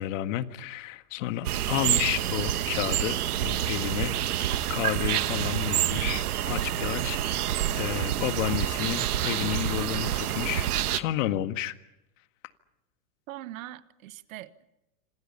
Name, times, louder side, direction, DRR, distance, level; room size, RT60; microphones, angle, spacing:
voice 1, 0.0-11.8, left 13 dB, 55° left, 1.8 m, -31 dB
sound 1, 1.4-11.0, right 11 dB, 85° right, 1.3 m, -28 dB
voice 2, 13.3-14.6, right 14 dB, 65° right, 1.4 m, -42 dB
27.5 x 26.5 x 5.7 m
hypercardioid pair, 130°, 44 cm